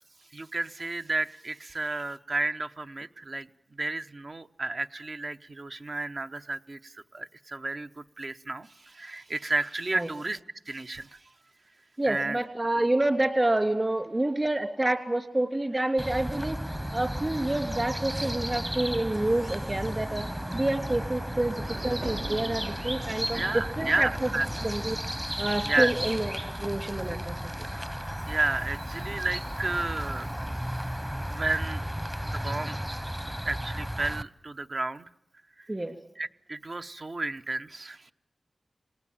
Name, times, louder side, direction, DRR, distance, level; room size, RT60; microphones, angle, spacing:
voice 1, 0.3-3.5 3.8-10.4 10.7-11.2 12.1-12.4 23.3-24.7 25.7-25.9 28.3-30.3 31.3-31.9 32.2-32.8 33.4-35.1 36.2-38.1, right 2 dB, 55° right, 8 dB, 0.9 m, -32 dB
voice 2, 12.0-16.6 16.9-20.3 20.5-24.3 24.6-25.0 25.4-27.7 35.7-35.9, right 1 dB, 35° right, 8 dB, 3.0 m, -28 dB
sound 1, 16.0-34.2, equal, 10° right, 0.9 m, -34 dB
sound 2, 16.7-24.7, right 2 dB, 85° right, 2.4 m, -45 dB
26.0 x 19.0 x 8.9 m, 0.87 s
cardioid pair, 40°, 0 cm